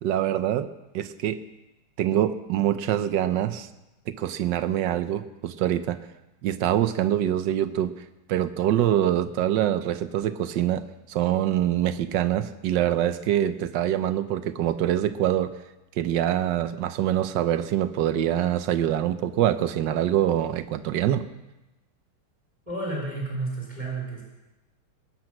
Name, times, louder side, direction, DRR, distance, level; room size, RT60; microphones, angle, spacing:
voice 1, 0.0-1.4 2.0-3.7 4.1-6.0 6.4-7.9 8.3-15.5 16.0-21.3, right 11 dB, 70° right, 12 dB, 1.2 m, -25 dB
voice 2, 22.7-24.2, right 2 dB, 20° right, -3 dB, 3.6 m, -31 dB
20.5 x 8.8 x 5.9 m, 1.0 s
omnidirectional pair, 2.3 m